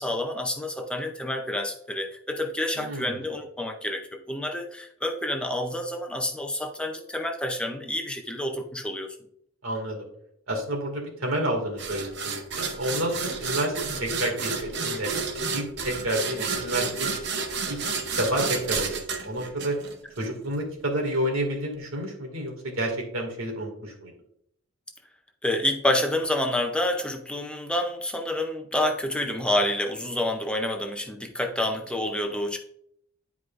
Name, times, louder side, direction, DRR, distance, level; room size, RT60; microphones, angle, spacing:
voice 1, 0.0-9.2 25.4-32.6, left 1 dB, 5° left, 3 dB, 0.5 m, -28 dB
voice 2, 2.8-3.2 9.6-10.0 10.5-13.8 14.0-15.1 15.5-17.1 17.7-17.8 18.2-19.8 20.2-24.1, right 1 dB, 80° right, 1 dB, 2.1 m, -29 dB
sound 1, 11.8-20.3, right 4 dB, 55° right, 0.8 m, -31 dB
11.0 x 4.8 x 2.5 m, 0.70 s
head